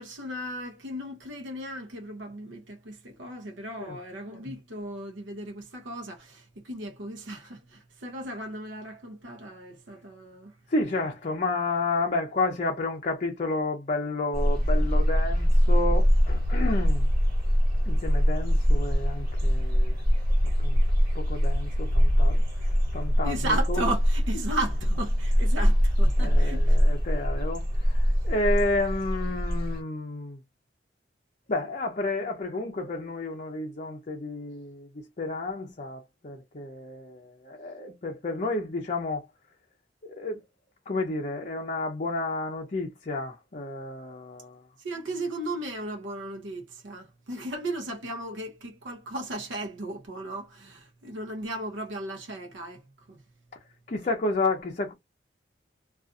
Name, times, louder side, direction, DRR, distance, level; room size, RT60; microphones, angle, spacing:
voice 1, 0.0-10.5 23.2-26.8 44.8-52.8 53.1-53.2, right 1 dB, 70° right, 0.7 m, -35 dB
voice 2, 10.7-17.1 17.8-20.3 20.6-20.8 21.1-22.4 22.9-23.8 26.2-30.4 31.5-34.9 35.2-39.3 40.0-40.4 40.9-44.6 53.9-54.9, left 2 dB, 40° left, 0.5 m, -31 dB
sound 1, 14.3-29.8, equal, 50° right, 1.4 m, -23 dB
2.6 x 2.4 x 2.4 m
head